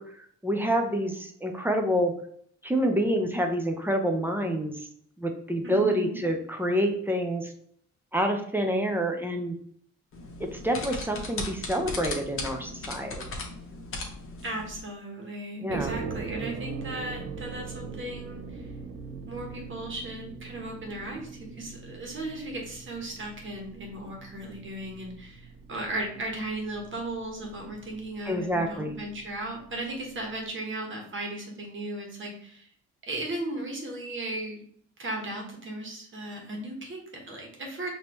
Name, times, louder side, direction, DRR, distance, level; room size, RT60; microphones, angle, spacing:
voice 1, 0.0-2.1 2.6-4.9 5.2-7.5 8.1-9.6 10.4-13.3 15.6-15.9 28.3-28.9, equal, 5° right, 3 dB, 0.8 m, -27 dB
voice 2, 5.6-6.2 14.4-18.7 19.3-32.7 33.0-34.6 35.0-37.9, right 1 dB, 40° right, 0 dB, 1.5 m, -36 dB
sound 1, 10.1-14.8, left 2 dB, 45° left, 1.1 m, -37 dB
sound 2, 15.7-30.5, right 5 dB, 55° right, 0.8 m, -42 dB
5.0 x 3.0 x 3.1 m, 0.63 s
cardioid pair, 90°, 30 cm